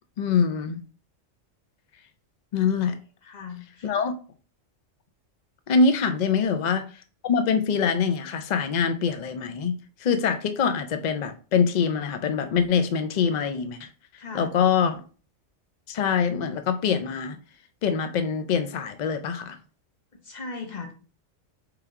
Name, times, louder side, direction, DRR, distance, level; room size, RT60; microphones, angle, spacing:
voice 1, 0.2-0.8 2.5-3.0 3.8-4.1 5.7-6.9 7.2-13.9 14.3-15.0 15.9-17.4 17.8-19.6, left 6 dB, 85° left, 0.3 m, -24 dB
voice 2, 3.2-4.0 6.0-6.2 14.2-14.5 20.2-20.9, left 4 dB, 40° left, 0.9 m, -38 dB
4.4 x 3.4 x 3.5 m
omnidirectional pair, 1.3 m